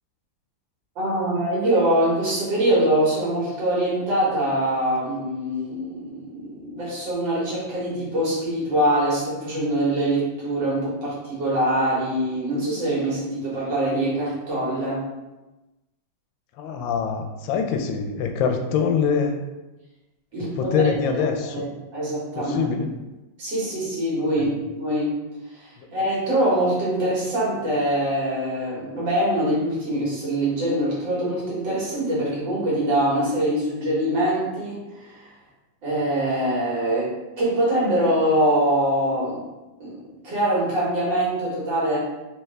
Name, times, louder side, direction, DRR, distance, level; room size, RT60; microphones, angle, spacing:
voice 1, 1.0-15.0 20.3-21.2 21.5-22.7 23.4-25.1 25.5-35.2 35.8-39.4 39.8-40.0 40.2-42.0, right 1 dB, 75° right, -7 dB, 2.3 m, -24 dB
voice 2, 16.6-19.4 20.6-21.7 22.4-22.9 24.4-24.5, left 6 dB, 85° left, 5 dB, 1.3 m, -24 dB
4.7 x 2.5 x 3.2 m, 1.1 s
omnidirectional pair, 2.0 m